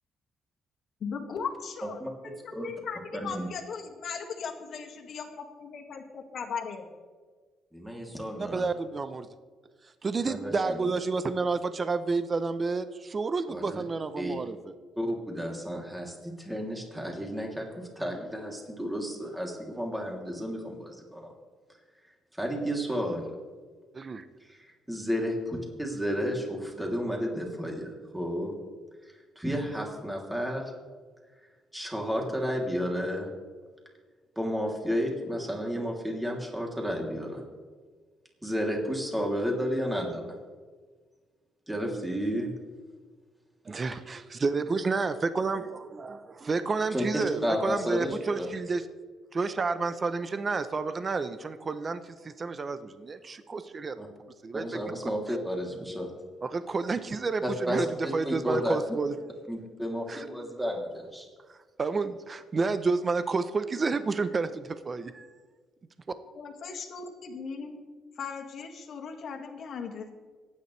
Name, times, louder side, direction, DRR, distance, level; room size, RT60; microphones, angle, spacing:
voice 1, 1.0-6.9 66.3-67.8 68.2-70.1, left 6 dB, 65° left, 2 dB, 2.0 m, -38 dB
voice 2, 1.8-2.7 3.2-3.5 7.7-8.7 10.2-10.9 13.5-13.8 14.2-14.4 15.0-17.7 18.0-21.3 22.4-23.2 24.5-28.5 29.4-30.6 31.7-33.3 34.4-37.4 38.4-40.4 41.7-42.5 46.9-48.5 54.0-54.1 54.5-56.1 57.4-57.8 58.2-58.8 59.5-61.3, equal, 5° right, 0 dB, 3.0 m, -32 dB
voice 3, 8.4-9.3 10.0-14.7 23.9-24.2 43.7-48.8 49.3-54.0 54.4-54.7 56.4-57.9 58.1-59.1 60.1-60.3 61.8-65.3, right 4 dB, 35° right, 11 dB, 0.7 m, -30 dB
25.5 x 9.7 x 3.3 m, 1.5 s
cardioid pair, 90°, 0 cm